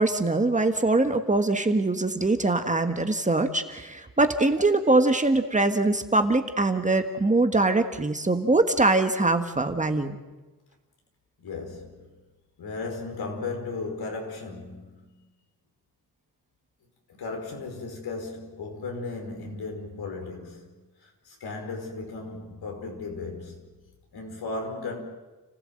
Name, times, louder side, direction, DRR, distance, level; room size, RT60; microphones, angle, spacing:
voice 1, 0.0-10.2, right 2 dB, 20° right, 1.5 m, -23 dB
voice 2, 11.4-12.1 12.6-15.2 17.1-23.8 24.1-25.0, left 3 dB, 75° left, 5.3 m, -36 dB
30.0 x 15.5 x 7.8 m
cardioid pair, 100°, 38 cm